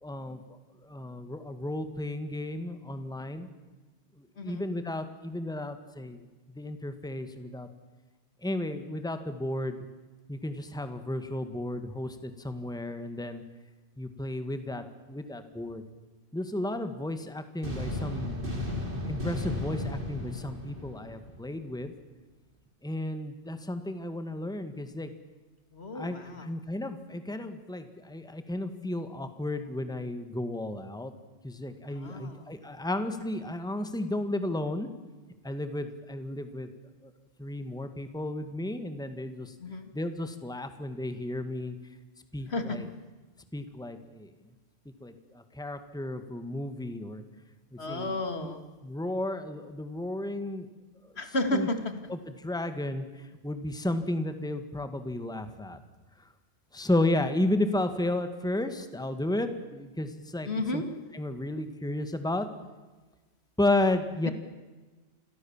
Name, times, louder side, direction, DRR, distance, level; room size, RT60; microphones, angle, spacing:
voice 1, 0.0-3.5 4.2-6.2 6.6-7.7 8.4-9.8 10.3-13.4 14.0-15.8 16.3-18.4 19.1-21.9 22.8-25.1 25.9-31.1 31.4-34.9 35.4-36.7 37.0-37.1 37.4-39.5 39.9-41.8 42.3-42.9 43.5-44.3 45.0-47.2 47.7-48.5 48.8-50.7 51.0-51.1 51.5-51.7 52.1-53.1 53.4-55.8 56.7-60.8 61.1-62.5 63.6-64.3, left 1 dB, 5° left, 9 dB, 1.8 m, -33 dB
sound 1, 17.6-21.6, left 1 dB, 50° right, 4.1 m, -34 dB
voice 2, 25.7-26.5 31.9-32.4 39.6-39.9 42.5-42.8 47.8-48.6 51.2-51.8 60.5-60.8 64.3-64.4, left 2 dB, 70° left, 7 dB, 2.7 m, -32 dB
29.0 x 23.0 x 7.3 m, 1.3 s
omnidirectional pair, 1.1 m